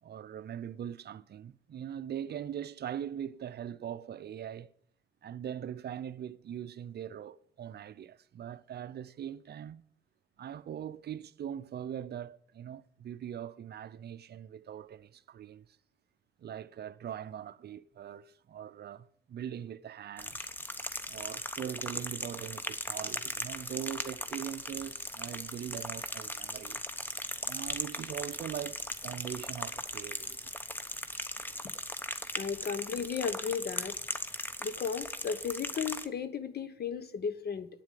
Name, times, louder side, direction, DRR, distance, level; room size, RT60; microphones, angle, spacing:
voice 1, 0.0-4.7 5.2-9.8 10.4-15.7 16.4-20.5 21.1-26.8 27.4-30.5, right 9 dB, 50° right, 0.6 m, -41 dB
sound 1, 20.2-36.1, left 1 dB, 10° left, 1.0 m, -38 dB
voice 2, 32.4-34.0 34.6-37.7, left 6 dB, 50° left, 1.2 m, -35 dB
9.1 x 7.3 x 9.1 m
cardioid pair, 75°, 21 cm